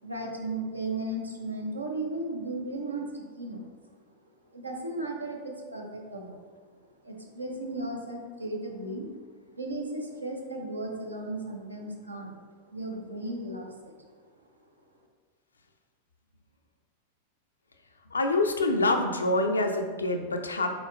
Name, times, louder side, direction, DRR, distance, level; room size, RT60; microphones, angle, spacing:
voice 1, 0.0-3.7 4.5-6.5 7.0-9.1 9.5-13.9, right 2 dB, 80° right, 1 dB, 0.6 m, -35 dB
voice 2, 18.1-20.7, left 2 dB, 75° left, 5 dB, 0.4 m, -26 dB
5.0 x 3.9 x 2.4 m, 1.5 s
figure-of-eight pair, 90°, 0 cm